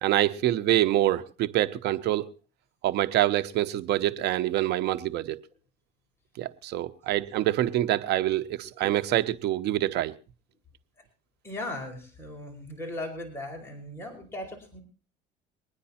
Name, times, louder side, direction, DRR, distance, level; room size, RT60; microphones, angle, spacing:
voice 1, 0.0-2.3 2.8-5.4 6.4-10.1, right 13 dB, 80° right, 0.9 m, -26 dB
voice 2, 11.4-14.8, left 1 dB, 15° left, 4.8 m, -38 dB
23.0 x 9.9 x 4.3 m
cardioid pair, 110°, 17 cm